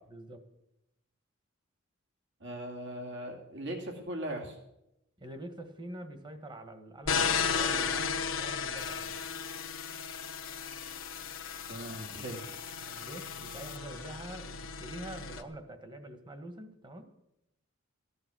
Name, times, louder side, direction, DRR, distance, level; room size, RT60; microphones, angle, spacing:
voice 1, 0.1-0.4 5.2-9.3 12.8-17.1, right 1 dB, 20° right, 8 dB, 1.5 m, -45 dB
voice 2, 2.4-4.6 11.7-12.5, right 1 dB, 65° right, 2 dB, 2.4 m, -39 dB
sound 1, 7.1-15.4, left 6 dB, 70° left, 0.9 m, -35 dB
sound 2, 8.8-13.8, left 12 dB, 45° left, 0.7 m, -47 dB
14.5 x 11.0 x 6.2 m, 0.85 s
head